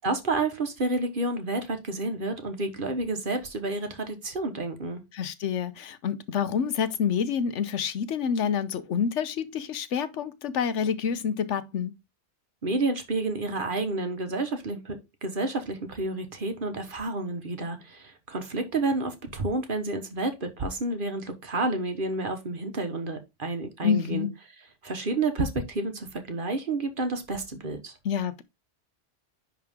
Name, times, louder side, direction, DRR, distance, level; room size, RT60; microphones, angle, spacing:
voice 1, 0.0-5.0 12.6-24.3 24.8-28.0, right 2 dB, 45° right, 1.4 m, -30 dB
voice 2, 5.1-11.9 23.8-24.3 28.0-28.4, left 7 dB, 80° left, 1.1 m, -28 dB
10.5 x 3.7 x 3.6 m
omnidirectional pair, 1.2 m